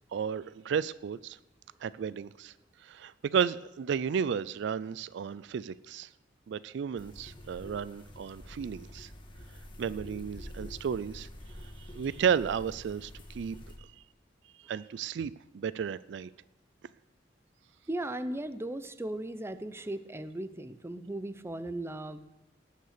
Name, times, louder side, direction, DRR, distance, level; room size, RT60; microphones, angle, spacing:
voice 1, 0.1-1.4 1.8-2.5 2.8-6.1 6.5-9.1 9.8-11.3 11.6-13.6 14.6-16.3, right 7 dB, 70° right, 19 dB, 0.3 m, -33 dB
sound 1, 7.0-13.8, left 1 dB, 25° left, 1.6 m, -47 dB
voice 2, 17.9-22.2, right 1 dB, 15° right, 13 dB, 0.5 m, -37 dB
18.5 x 6.6 x 6.6 m, 0.97 s
head